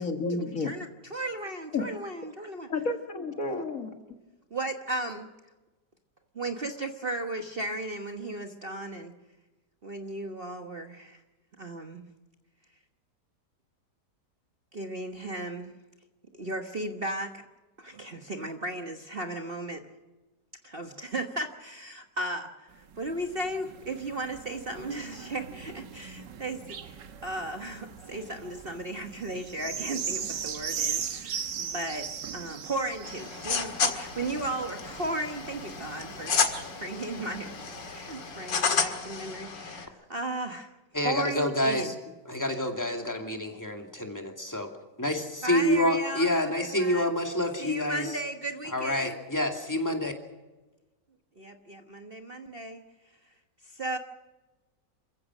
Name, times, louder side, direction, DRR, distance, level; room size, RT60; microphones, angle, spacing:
voice 1, 0.0-0.7 1.7-1.8 2.7-3.9, left 3 dB, 50° left, 6 dB, 1.9 m, -30 dB
voice 2, 0.6-2.7 4.5-5.3 6.3-9.1 9.8-11.2 11.6-12.1 14.7-15.7 16.4-17.3 17.8-19.8 20.6-32.1 32.3-36.5 36.8-37.5 37.8-40.7 40.9-41.9 45.4-47.1 47.6-49.2 51.4-52.8 53.6-54.0, right 2 dB, 35° right, 5 dB, 1.3 m, -35 dB
sound 1, 22.7-38.6 39.2-39.3, right 7 dB, 80° right, 1.9 m, -39 dB
sound 2, 33.0-39.9, left 5 dB, 85° left, 2.6 m, -32 dB
voice 3, 40.9-41.9 42.3-44.7 45.0-48.2 48.7-50.1, left 1 dB, 10° left, 3 dB, 2.4 m, -28 dB
27.5 x 15.5 x 6.2 m, 1.1 s
omnidirectional pair, 1.9 m